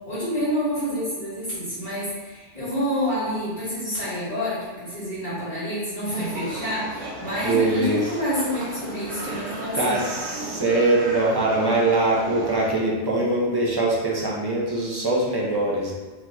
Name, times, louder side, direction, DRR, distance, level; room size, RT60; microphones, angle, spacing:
voice 1, 0.0-9.9, equal, 40° left, -13 dB, 1.5 m, -28 dB
sound 1, 6.2-12.7, right 2 dB, 85° right, 1.1 m, -35 dB
voice 2, 7.4-8.1 9.1-9.4 9.7-15.9, right 2 dB, 25° right, -4 dB, 0.6 m, -23 dB
3.1 x 3.0 x 3.8 m, 1.4 s
omnidirectional pair, 1.3 m